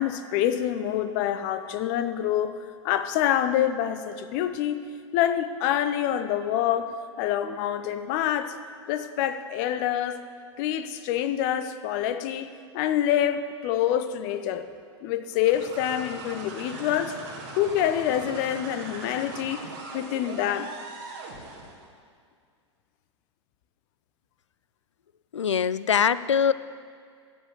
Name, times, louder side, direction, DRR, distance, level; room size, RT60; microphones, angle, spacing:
voice 1, 0.0-2.6 2.8-4.8 5.1-8.5 8.9-10.2 10.6-14.7 15.0-17.1 17.6-19.6 19.9-20.7, left 11 dB, 40° left, 11 dB, 0.7 m, -26 dB
sound 1, 15.3-21.8, right 3 dB, 45° right, 2.0 m, -40 dB
voice 2, 25.3-26.5, left 7 dB, 75° left, 17 dB, 0.4 m, -22 dB
14.0 x 5.3 x 7.7 m, 2.1 s
figure-of-eight pair, 95°, 16 cm